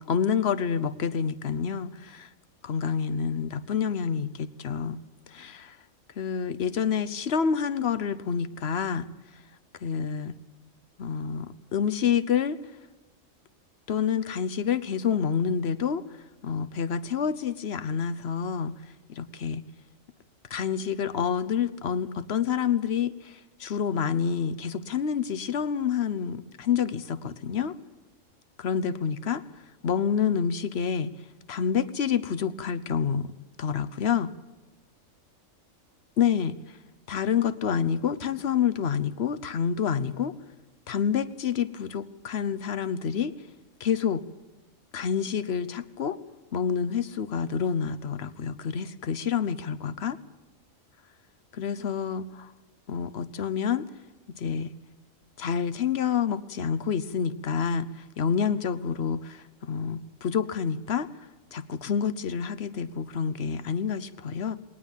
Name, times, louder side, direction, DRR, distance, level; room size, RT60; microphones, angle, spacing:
voice 1, 0.0-2.3 2.6-5.0 5.3-5.8 6.2-9.1 9.8-10.3 11.0-12.6 13.9-16.0 16.4-18.8 19.1-19.6 20.5-27.7 28.6-29.4 29.8-31.1 31.5-33.3 33.6-34.3 36.2-36.6 37.1-40.3 40.9-43.3 43.8-44.2 44.9-46.2 46.5-50.2 51.5-52.5 52.9-53.9 54.3-54.7 55.4-61.1 61.5-64.6, left 7 dB, 55° left, 14 dB, 1.1 m, -28 dB
20.5 x 18.5 x 7.3 m, 1.1 s
omnidirectional pair, 1.4 m